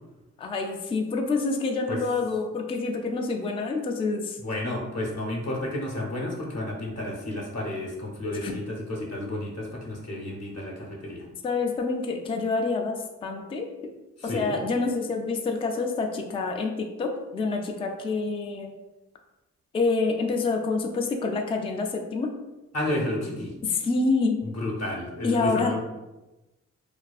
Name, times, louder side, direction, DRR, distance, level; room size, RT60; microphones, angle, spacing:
voice 1, 0.4-4.4 8.4-8.5 11.4-13.7 14.2-18.7 19.7-22.3 23.6-24.4 25.2-25.8, left 3 dB, 20° left, 3 dB, 0.3 m, -27 dB
voice 2, 4.4-11.3 14.2-14.5 22.7-23.5 24.5-25.8, left 1 dB, 55° left, 0 dB, 0.8 m, -31 dB
2.5 x 2.3 x 2.3 m, 1.0 s
supercardioid pair, 45°, 32 cm